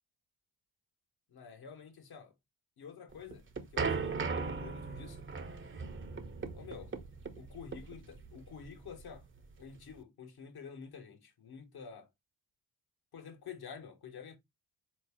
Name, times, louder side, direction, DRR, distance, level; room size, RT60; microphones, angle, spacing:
voice 1, 1.3-2.3 2.8-3.4 3.7-5.3 6.5-6.9 7.3-9.3 9.6-12.1 13.1-14.4, left 6 dB, 55° left, 1.4 m, -49 dB
sound 1, 3.1-10.0, right 5 dB, 25° right, 0.8 m, -38 dB
4.1 x 2.9 x 3.5 m
hypercardioid pair, 45°, 44 cm